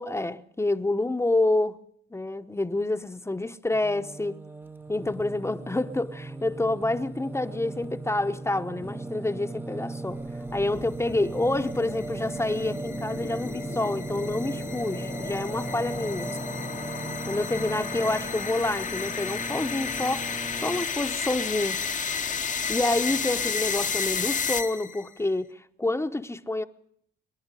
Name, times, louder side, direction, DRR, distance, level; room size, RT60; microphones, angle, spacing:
voice 1, 0.0-1.8 2.1-4.4 4.9-10.2 10.5-16.3 17.3-20.3 20.6-21.8 22.7-26.6, left 2 dB, 15° left, 0.9 m, -28 dB
Singing, 3.7-20.8, right 2 dB, 10° right, 0.7 m, -37 dB
sound 1, 10.3-25.1, left 6 dB, 40° left, 1.0 m, -32 dB
24.5 x 11.0 x 9.8 m
cardioid pair, 90°, 20 cm